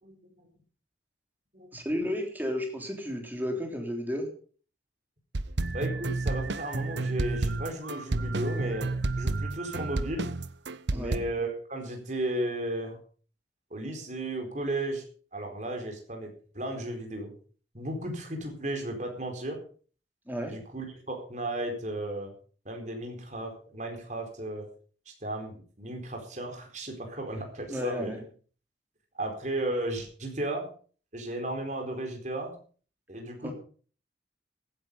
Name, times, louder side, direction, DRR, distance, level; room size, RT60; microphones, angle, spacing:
voice 1, 1.7-4.3 10.9-11.2 20.3-20.5 27.7-28.2 33.4-33.5, left 1 dB, 10° right, 2 dB, 3.5 m, -32 dB
sound 1, 5.3-11.2, right 2 dB, 80° right, 0.9 m, -30 dB
voice 2, 5.7-10.3 10.9-13.0 13.7-15.0 15.3-17.3 17.7-19.6 20.5-22.3 22.6-24.7 25.2-28.1 29.2-30.7 31.1-32.5 33.1-33.5, right 1 dB, 45° right, 3 dB, 4.3 m, -34 dB
15.5 x 10.0 x 5.4 m, 0.42 s
head